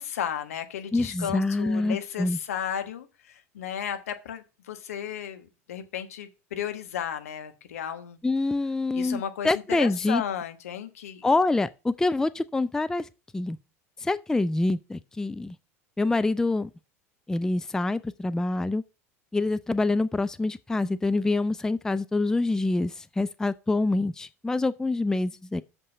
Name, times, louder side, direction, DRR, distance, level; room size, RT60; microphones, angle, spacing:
voice 1, 0.0-8.2 8.9-9.5 9.8-11.2, left 9 dB, 70° left, 1.3 m, -34 dB
voice 2, 0.9-2.4 8.2-10.2 11.2-13.1 13.3-13.6 14.0-15.6 16.0-16.7 17.3-18.8 19.3-25.6, left 2 dB, 5° left, 0.4 m, -26 dB
6.7 x 5.5 x 6.9 m
figure-of-eight pair, 75°, 8 cm